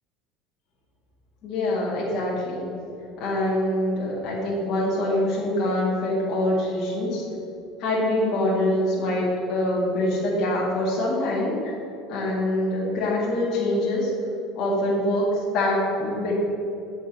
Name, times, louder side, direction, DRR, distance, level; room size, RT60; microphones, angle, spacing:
voice 1, 1.4-2.7 3.2-7.3 7.8-11.7 12.1-14.1 14.6-16.3, left 1 dB, 50° left, -6 dB, 1.8 m, -24 dB
7.7 x 4.9 x 7.2 m, 2.9 s
cardioid pair, 140°, 0 cm